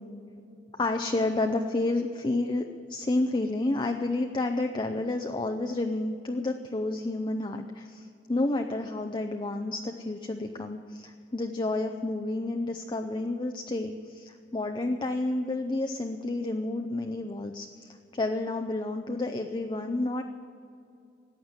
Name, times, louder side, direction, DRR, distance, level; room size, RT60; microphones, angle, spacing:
voice 1, 0.8-20.2, left 2 dB, 25° left, 4 dB, 0.6 m, -30 dB
14.5 x 9.3 x 8.0 m, 2.4 s
head